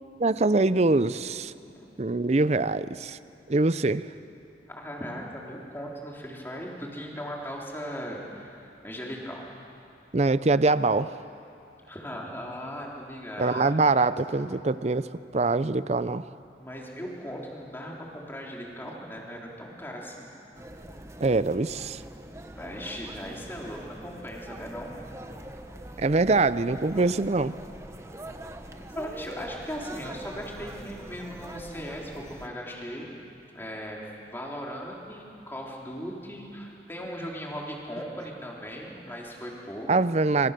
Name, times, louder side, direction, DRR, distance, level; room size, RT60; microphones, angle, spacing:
voice 1, 0.2-1.5 2.0-3.2 3.5-4.1 10.1-11.2 13.4-16.2 21.2-22.0 26.0-27.5 39.9-40.5, right 3 dB, 35° right, 15 dB, 0.5 m, -24 dB
voice 2, 4.7-9.4 11.8-13.7 16.6-20.3 22.5-24.9 28.9-33.1 33.5-39.9, equal, 10° left, -2 dB, 3.7 m, -38 dB
sound 1, 20.5-32.5, right 1 dB, 15° right, 1.1 m, -43 dB
26.5 x 25.0 x 6.8 m, 2.6 s
head